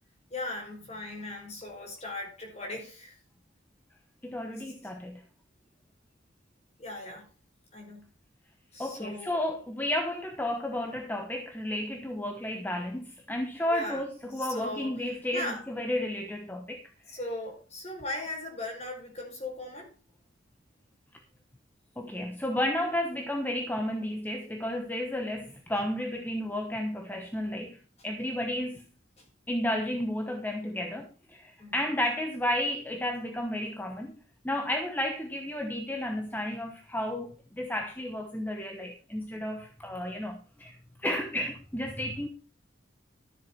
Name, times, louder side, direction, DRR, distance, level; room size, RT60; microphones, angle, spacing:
voice 1, 0.3-3.2 4.6-4.9 6.8-7.3 7.7-8.1 8.7-9.4 13.7-14.0 14.3-15.6 17.1-19.9 29.2-29.3 31.6-31.8, left 2 dB, 35° left, 5.0 m, -38 dB
voice 2, 4.2-5.2 8.8-16.8 17.1-17.2 22.0-28.9 29.5-34.1 34.4-40.8 41.0-42.3, left 1 dB, 10° left, 1.0 m, -32 dB
13.0 x 7.5 x 4.6 m
head